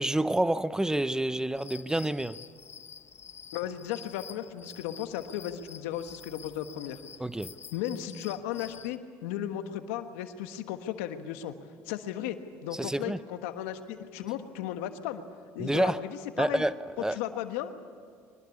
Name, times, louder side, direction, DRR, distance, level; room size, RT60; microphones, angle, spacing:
voice 1, 0.0-2.4 7.2-7.6 12.7-13.2 15.6-16.0 16.4-17.2, right 1 dB, 10° right, 0.7 m, -28 dB
sound 1, 1.6-9.0, left 7 dB, 40° left, 0.7 m, -48 dB
voice 2, 3.5-7.0 7.7-11.5 11.9-15.2 15.5-16.6 17.1-17.9, left 11 dB, 80° left, 1.4 m, -35 dB
23.5 x 20.5 x 8.5 m
hypercardioid pair, 70°, 7 cm